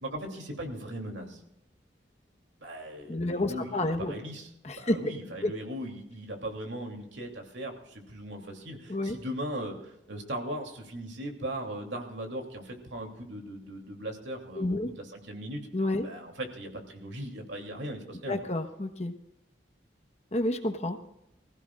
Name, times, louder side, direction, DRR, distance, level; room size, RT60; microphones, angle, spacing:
voice 1, 0.0-1.4 2.6-15.6 16.0-18.5, right 1 dB, 90° right, 2 dB, 2.9 m, -38 dB
voice 2, 3.1-4.1 4.6-5.0 5.4-5.5 8.9-9.2 14.6-14.9 15.7-16.0 18.3-19.1 20.3-21.0, left 1 dB, 35° left, 6 dB, 1.2 m, -29 dB
25.0 x 15.5 x 2.4 m, 0.81 s
head